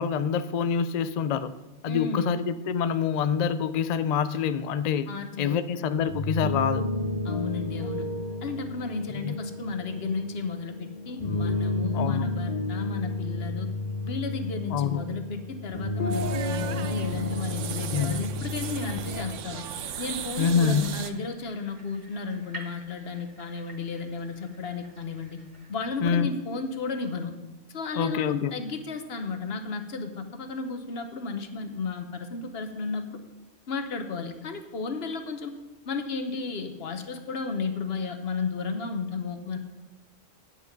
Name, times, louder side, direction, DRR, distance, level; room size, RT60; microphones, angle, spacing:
voice 1, 0.0-1.5 1.8-5.1 5.4-6.9 9.1-9.3 11.9-12.3 14.7-15.0 17.9-18.2 20.4-21.0 26.0-26.3 28.0-28.6, left 7 dB, 85° left, 13 dB, 0.3 m, -26 dB
voice 2, 1.8-2.3 5.1-5.6 7.2-8.1 8.4-13.7 14.0-19.6 20.0-25.4 25.7-27.3 27.7-33.2 33.7-35.5 35.8-39.6, left 4 dB, 55° left, 7 dB, 1.2 m, -33 dB
sound 1, 6.0-19.3, left 2 dB, 35° left, 1.1 m, -32 dB
sound 2, 16.1-21.1, right 8 dB, 80° right, 1.0 m, -37 dB
sound 3, 20.3-25.7, right 1 dB, 35° right, 1.5 m, -49 dB
9.4 x 9.0 x 5.2 m, 1.1 s
omnidirectional pair, 1.3 m